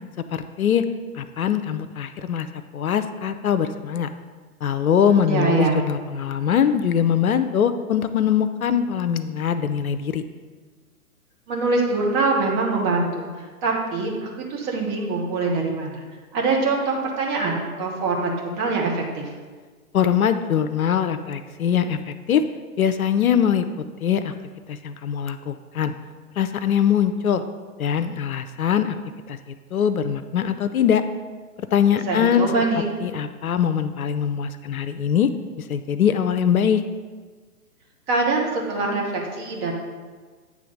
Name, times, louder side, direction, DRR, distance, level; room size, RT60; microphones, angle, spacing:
voice 1, 0.3-0.8 1.1-2.5 2.7-4.1 4.6-10.2 19.9-22.4 22.8-23.7 24.0-24.3 24.7-25.9 26.4-27.4 27.8-29.0 29.3-29.4 29.7-31.0 31.7-32.5 33.0-35.3 35.7-36.8, left 8 dB, 70° left, 10 dB, 0.6 m, -22 dB
voice 2, 5.0-5.8 11.5-16.0 16.3-19.3 32.1-32.9 38.1-39.7, right 3 dB, 20° right, -1 dB, 1.1 m, -24 dB
8.6 x 3.4 x 6.4 m, 1.5 s
figure-of-eight pair, 130°, 44 cm